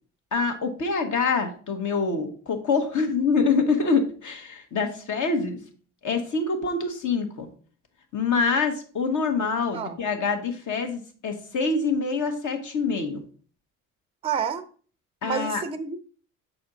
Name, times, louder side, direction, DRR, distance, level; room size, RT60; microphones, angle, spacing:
voice 1, 0.3-5.6 6.0-7.5 8.1-13.2 15.2-15.6, left 4 dB, 45° left, 5 dB, 1.4 m, -25 dB
voice 2, 14.2-14.6 15.2-16.0, right 7 dB, 15° right, 12 dB, 0.5 m, -29 dB
6.2 x 4.2 x 3.9 m, 0.43 s
hypercardioid pair, 55°, 41 cm